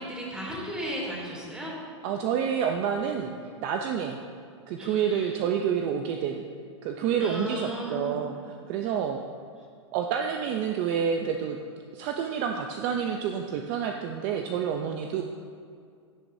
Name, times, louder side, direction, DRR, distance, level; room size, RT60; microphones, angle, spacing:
voice 1, 0.0-1.7 4.8-5.4 7.2-8.2, equal, 5° right, -5 dB, 3.0 m, -35 dB
voice 2, 2.0-4.2 4.7-6.5 6.8-8.3 8.7-9.2 9.9-11.6 11.9-15.2, right 7 dB, 40° right, 3 dB, 0.6 m, -28 dB
16.5 x 9.0 x 2.8 m, 2.2 s
hypercardioid pair, 140°, 15 cm